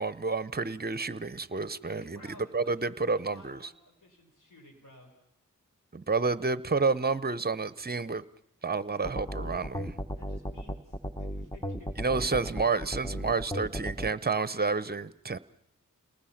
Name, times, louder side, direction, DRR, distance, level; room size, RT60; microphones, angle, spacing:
voice 1, 0.0-2.2 2.5-3.6 5.9-8.2 8.6-9.9 12.0-15.4, right 4 dB, 30° right, 16 dB, 0.8 m, -30 dB
voice 2, 1.9-5.1 10.2-12.6, left 1 dB, 70° left, 2 dB, 5.4 m, -55 dB
sound 1, 9.0-14.1, equal, 15° left, 1.3 m, -35 dB
29.5 x 19.5 x 5.9 m, 0.80 s
wide cardioid pair, 55°, 33 cm